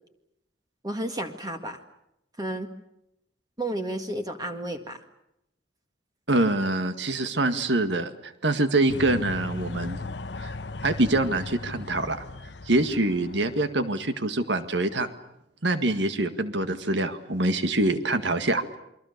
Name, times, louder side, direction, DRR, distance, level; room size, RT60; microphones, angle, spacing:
voice 1, 0.8-1.8 2.4-2.7 3.6-5.0, right 1 dB, 20° right, 6 dB, 1.8 m, -32 dB
voice 2, 6.3-10.0 10.4-10.5 10.8-12.2 12.7-15.1 15.6-18.6, right 2 dB, 75° right, 10 dB, 1.9 m, -25 dB
sound 1, 8.9-13.8, left 3 dB, 65° left, 1.0 m, -37 dB
28.5 x 23.5 x 6.8 m, 0.82 s
head